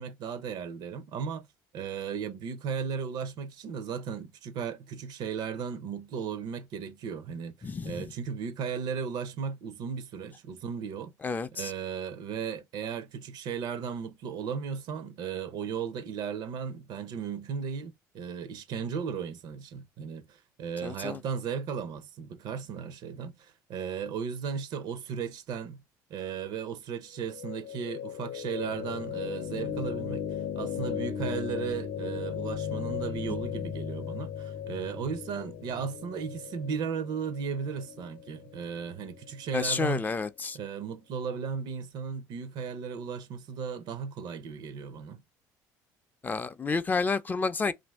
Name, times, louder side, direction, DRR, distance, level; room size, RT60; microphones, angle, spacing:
voice 1, 0.0-1.5 1.7-11.1 11.5-25.8 26.1-30.2 30.5-40.0 40.5-45.2, right 6 dB, 65° right, 0.6 m, -36 dB
voice 2, 7.6-8.0 11.2-11.7 20.8-21.2 39.5-40.6 46.2-47.7, left 4 dB, 20° left, 0.4 m, -30 dB
sound 1, 27.2-39.3, left 8 dB, 70° left, 0.6 m, -37 dB
2.8 x 2.5 x 3.3 m
supercardioid pair, 95°, 8 cm